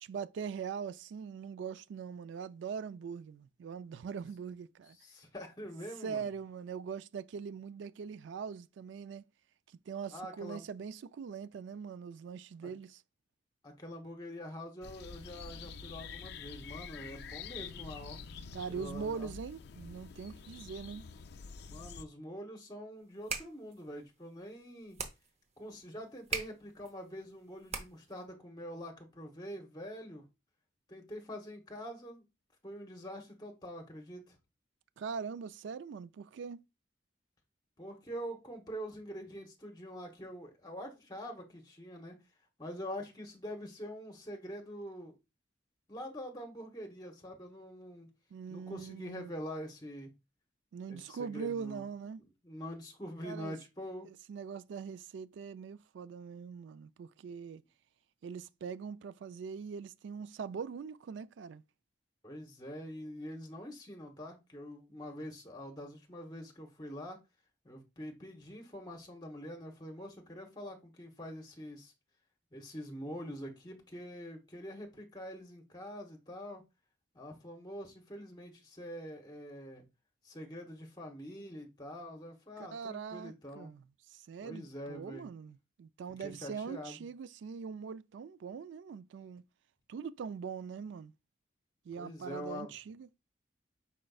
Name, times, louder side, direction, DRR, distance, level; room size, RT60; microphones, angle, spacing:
voice 1, 0.0-5.0 6.0-9.2 9.9-13.0 18.5-21.0 35.0-36.6 48.3-49.3 50.7-52.2 53.2-53.6 54.0-57.6 58.2-61.6 82.6-89.4 89.9-91.1 91.8-93.1, right 6 dB, 70° right, 0.3 m, -42 dB
voice 2, 5.0-6.2 10.1-10.6 12.6-12.7 13.6-18.2 18.6-19.3 21.6-25.0 25.6-30.3 30.9-32.2 32.6-34.4 37.8-42.2 42.6-45.2 45.9-48.1 48.5-50.1 50.9-51.8 52.4-54.1 62.2-67.2 67.6-71.9 72.5-76.6 77.1-79.8 80.2-83.8 84.4-85.3 86.2-86.9 92.0-92.7, equal, 20° left, 0.9 m, -45 dB
sound 1, 14.8-22.0, left 5 dB, 60° left, 0.4 m, -47 dB
sound 2, 23.0-28.2, right 4 dB, 35° right, 0.6 m, -43 dB
5.1 x 4.3 x 2.3 m
head